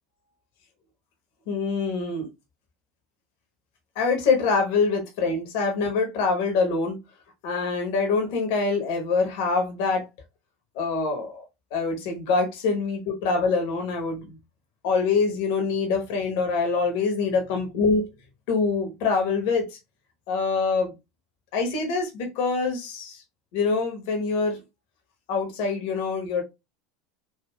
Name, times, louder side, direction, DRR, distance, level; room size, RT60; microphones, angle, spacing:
voice 1, 1.5-2.3 3.9-7.0 7.4-10.1 10.7-11.4 11.7-14.4 14.8-18.0 18.5-19.8 20.3-20.9 21.5-23.2 23.5-24.6 25.3-26.4, left 4 dB, 60° left, 0.9 m, -25 dB
3.5 x 2.3 x 2.2 m
hypercardioid pair, 80°, 0 cm